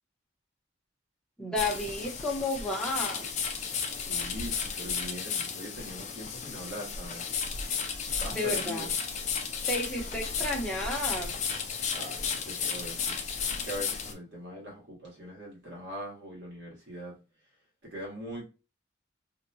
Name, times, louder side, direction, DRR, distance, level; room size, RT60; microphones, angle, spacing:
voice 1, 1.4-3.4 8.3-8.9 9.7-11.3, left 2 dB, 5° left, 0.7 m, -32 dB
sound 1, 1.6-14.1, left 6 dB, 35° left, 0.4 m, -33 dB
voice 2, 4.1-7.3 8.2-8.9 11.9-17.2 17.8-18.4, equal, 60° right, 1.4 m, -41 dB
2.7 x 2.2 x 2.6 m
head